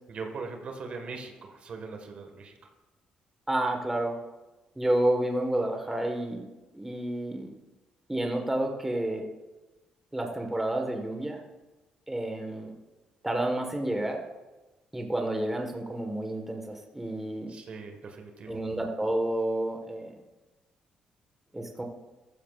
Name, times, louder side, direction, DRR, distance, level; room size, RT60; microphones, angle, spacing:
voice 1, 0.1-2.5 17.5-18.6, right 4 dB, 55° right, 4 dB, 1.7 m, -40 dB
voice 2, 3.5-4.1 4.8-6.4 6.7-7.5 8.1-9.3 10.1-11.4 12.1-12.7 13.2-14.2 14.9-17.5 18.5-20.1 21.5-21.8, right 1 dB, 10° right, 3 dB, 1.5 m, -30 dB
14.0 x 14.0 x 2.5 m, 1.1 s
cardioid pair, 95°, 2 cm